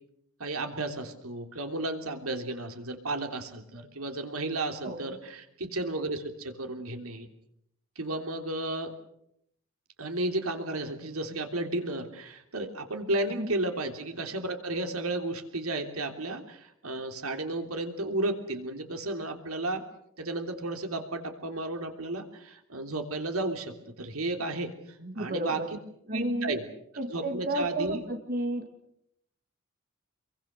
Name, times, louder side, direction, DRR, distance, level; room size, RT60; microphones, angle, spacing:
voice 1, 0.4-7.3 7.9-8.9 10.0-19.8 20.2-24.7 25.2-25.6 26.1-26.7 27.1-28.0, right 2 dB, 80° right, 5 dB, 3.3 m, -33 dB
voice 2, 4.8-5.2 13.3-13.5 25.0-25.7 26.1-26.5 27.0-28.7, right 1 dB, 45° right, 4 dB, 2.3 m, -32 dB
27.5 x 23.5 x 6.7 m, 0.75 s
head